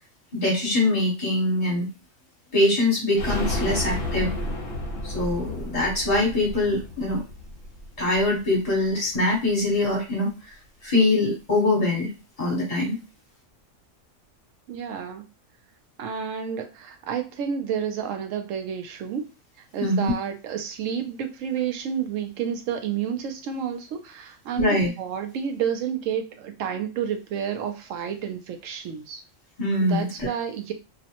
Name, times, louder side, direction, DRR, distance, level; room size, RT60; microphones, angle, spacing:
voice 1, 0.3-1.9 2.5-4.3 5.0-7.2 8.0-10.3 10.8-12.1 12.4-13.0 19.8-20.1 24.6-24.9 29.6-30.3, left 2 dB, 30° left, -5 dB, 1.2 m, -23 dB
sound 1, 3.1-8.8 9.1-9.2 9.5-9.6, left 1 dB, 55° left, 0.9 m, -32 dB
voice 2, 14.7-15.2 16.0-19.3 19.7-29.2 29.8-30.7, right 8 dB, 80° right, 7 dB, 1.0 m, -30 dB
2.4 x 2.1 x 2.9 m, 0.30 s
omnidirectional pair, 1.3 m